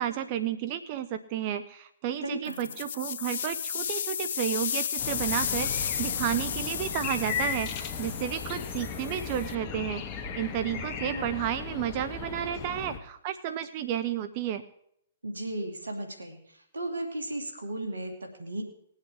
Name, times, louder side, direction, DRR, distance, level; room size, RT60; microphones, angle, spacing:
voice 1, 0.0-14.6, right 10 dB, 40° right, 11 dB, 0.7 m, -32 dB
voice 2, 2.2-2.7 10.7-11.3 15.2-18.6, right 1 dB, 85° right, 4 dB, 2.2 m, -36 dB
sound 1, 2.4-9.5, left 8 dB, 60° left, 0.6 m, -33 dB
sound 2, 5.0-13.0, left 6 dB, 35° left, 1.3 m, -36 dB
20.5 x 8.2 x 3.5 m, 0.70 s
figure-of-eight pair, 120°, 0 cm